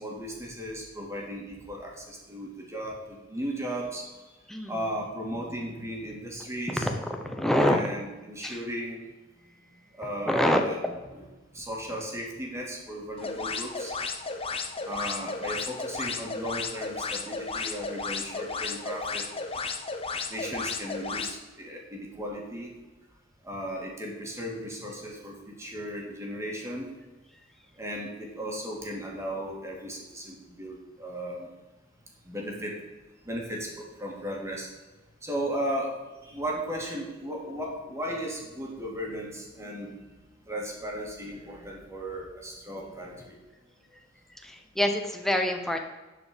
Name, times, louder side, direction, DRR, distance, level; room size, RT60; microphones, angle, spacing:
voice 1, 0.0-4.1 4.7-6.9 7.6-9.1 9.9-10.9 11.5-13.9 14.8-19.3 19.5-19.6 20.3-22.7 23.4-26.9 27.8-31.5 32.2-32.8 33.2-34.7 35.2-40.0 40.5-43.4, equal, 15° right, -1 dB, 2.3 m, -36 dB
voice 2, 6.8-7.9 8.4-8.6 10.3-10.6 44.3-45.8, left 1 dB, ahead, 3 dB, 1.0 m, -26 dB
sound 1, 13.2-21.3, left 4 dB, 30° left, 0.8 m, -34 dB
11.0 x 5.0 x 7.0 m, 1.2 s
head